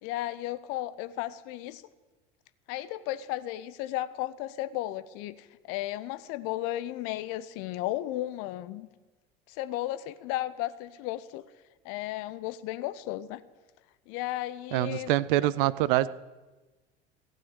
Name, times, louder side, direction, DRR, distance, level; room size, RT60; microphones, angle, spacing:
voice 1, 0.0-1.8 2.7-8.9 9.5-11.4 11.8-13.4 14.1-15.1, left 14 dB, 50° left, 15 dB, 0.7 m, -34 dB
voice 2, 14.7-16.1, right 15 dB, 55° right, 18 dB, 0.5 m, -25 dB
15.0 x 6.5 x 8.8 m, 1.2 s
figure-of-eight pair, 70°, 31 cm